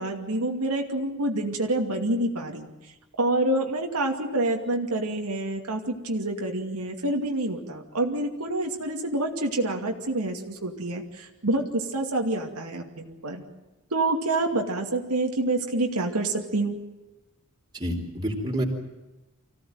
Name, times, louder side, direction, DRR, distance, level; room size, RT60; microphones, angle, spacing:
voice 1, 0.0-2.7 3.2-13.5 13.9-16.8, right 2 dB, 90° right, 2 dB, 2.5 m, -27 dB
voice 2, 17.7-18.6, equal, 20° right, 0 dB, 4.0 m, -28 dB
25.5 x 16.5 x 9.2 m, 1.1 s
head